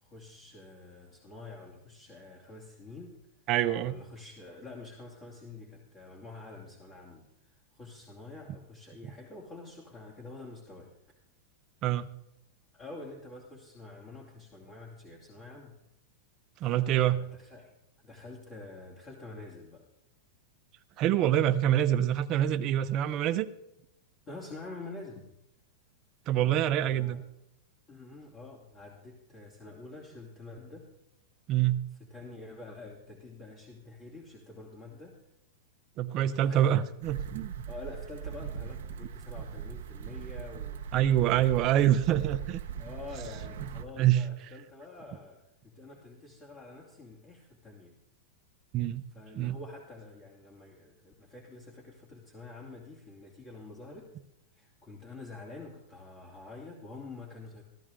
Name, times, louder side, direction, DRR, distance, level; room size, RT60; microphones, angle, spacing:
voice 1, 0.0-3.2 3.8-10.9 12.7-15.8 16.6-17.7 18.0-19.8 24.3-25.3 26.8-27.2 27.9-30.9 32.0-35.2 36.5-36.8 37.7-40.9 41.2-41.8 42.8-48.0 49.1-54.1 54.5-57.6, left 3 dB, 30° left, -3 dB, 2.6 m, -47 dB
voice 2, 3.5-3.9 11.8-12.1 16.6-17.2 21.0-23.5 26.3-27.2 31.5-31.9 36.0-37.6 40.9-42.6 44.0-44.2 48.7-49.0 49.3-49.5, right 12 dB, 40° right, 11 dB, 0.8 m, -26 dB
sound 1, 37.0-43.8, right 8 dB, 75° right, 1.1 m, -40 dB
15.0 x 13.0 x 3.8 m, 0.85 s
hypercardioid pair, 125°, 0 cm